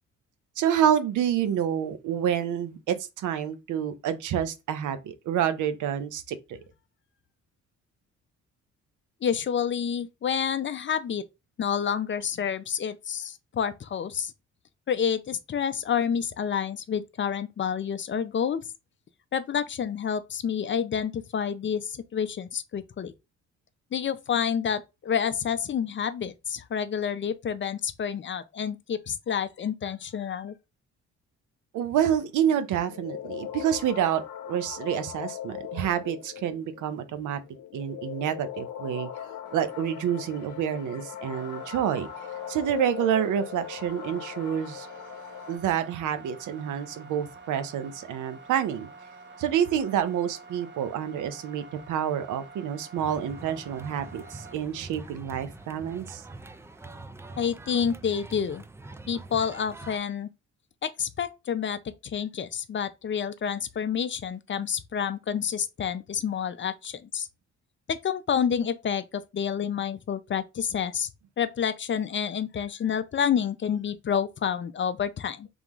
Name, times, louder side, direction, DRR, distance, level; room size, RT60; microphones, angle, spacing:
voice 1, 0.6-6.6 31.7-37.4 37.7-39.1 39.5-42.1 42.5-44.9 45.5-48.9 49.4-56.2, right 9 dB, 80° right, 0.8 m, -28 dB
voice 2, 9.2-11.2 11.6-14.3 14.9-18.6 19.3-23.1 23.9-30.5 57.4-58.6 59.1-60.3 60.8-67.3 67.9-71.1 71.4-75.5, left 7 dB, 40° left, 0.6 m, -29 dB
sound 1, 32.0-45.6, left 10 dB, 90° left, 0.7 m, -40 dB
sound 2, 39.4-57.0, right 4 dB, 35° right, 1.1 m, -49 dB
sound 3, 53.0-60.0, right 2 dB, 10° right, 0.4 m, -44 dB
3.6 x 3.5 x 3.0 m
cardioid pair, 90°, 30 cm